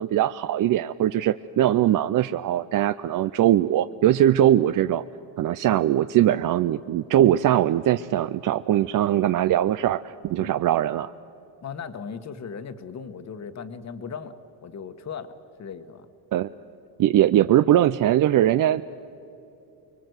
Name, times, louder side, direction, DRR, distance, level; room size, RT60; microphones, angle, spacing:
voice 1, 0.0-5.0 5.4-11.1 16.3-16.5 17.0-18.9, right 12 dB, 45° right, 13 dB, 0.5 m, -21 dB
voice 2, 11.6-14.3 14.6-15.3 15.6-16.1, left 6 dB, 35° left, 10 dB, 1.4 m, -37 dB
25.0 x 22.0 x 8.0 m, 2.9 s
cardioid pair, 115°, 46 cm